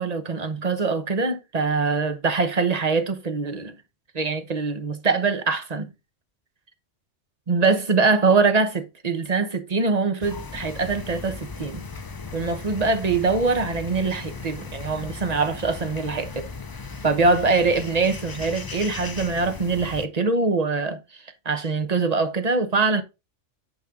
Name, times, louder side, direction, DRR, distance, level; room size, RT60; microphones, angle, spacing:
voice 1, 0.0-3.8 4.1-5.9 7.5-11.8 12.3-16.5 17.0-23.0, right 4 dB, 35° right, 1.0 m, -23 dB
sound 1, 10.2-20.1, left 4 dB, 30° left, 0.4 m, -37 dB
9.0 x 5.5 x 3.8 m
omnidirectional pair, 1.2 m